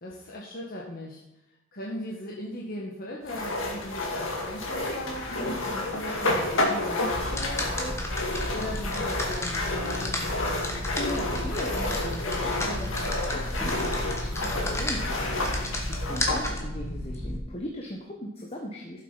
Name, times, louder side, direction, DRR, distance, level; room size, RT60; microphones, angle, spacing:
voice 1, 0.0-1.2 1.7-8.2 8.5-10.2, left 1 dB, 45° left, -3 dB, 1.6 m, -38 dB
sound 1, 3.3-16.5, left 2 dB, 75° left, 2.2 m, -30 dB
sound 2, 7.1-17.4, left 1 dB, 15° left, 1.6 m, -32 dB
voice 2, 10.3-19.0, left 1 dB, 30° left, 0 dB, 1.2 m, -39 dB
12.5 x 7.5 x 5.7 m, 0.94 s
head